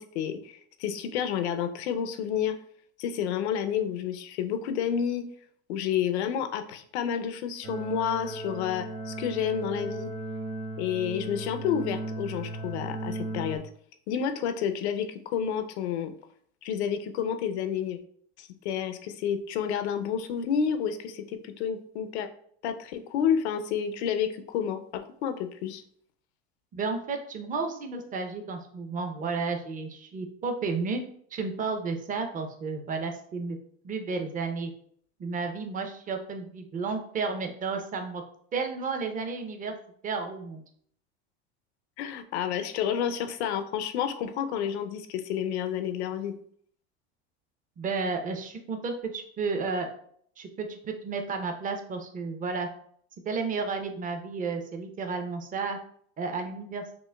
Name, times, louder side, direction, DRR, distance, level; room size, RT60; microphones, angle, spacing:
voice 1, 0.0-2.5 3.0-5.2 5.7-10.1 10.8-13.6 14.1-16.1 16.6-18.0 18.4-22.3 22.6-25.8 42.0-46.4, left 8 dB, 80° left, 8 dB, 0.6 m, -30 dB
sound 1, 7.6-13.6, right 2 dB, 70° right, 1.5 m, -36 dB
voice 2, 26.7-31.0 31.3-33.6 33.8-34.7 35.2-38.2 38.5-39.7 40.0-40.6 47.8-49.9 50.4-52.7 53.2-55.8 56.2-56.8, right 4 dB, 25° right, 5 dB, 0.6 m, -32 dB
5.9 x 2.1 x 2.2 m, 0.62 s
supercardioid pair, 110°, 33 cm